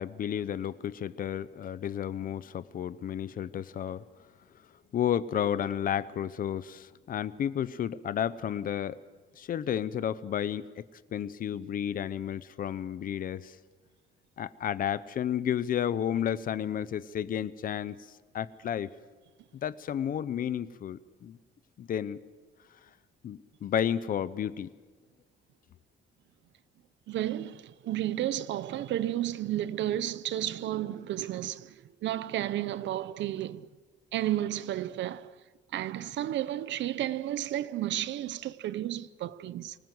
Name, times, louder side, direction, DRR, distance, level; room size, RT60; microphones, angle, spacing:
voice 1, 0.0-4.0 4.9-9.0 9.4-10.8 11.1-13.6 14.4-18.0 18.3-18.9 19.6-21.4 21.8-22.2 23.2-24.7, left 9 dB, 45° left, 0.8 m, -32 dB
voice 2, 27.1-33.7 34.1-35.3 35.7-39.8, right 13 dB, 70° right, 0.8 m, -32 dB
25.0 x 19.5 x 7.9 m
cardioid pair, 165°, 19 cm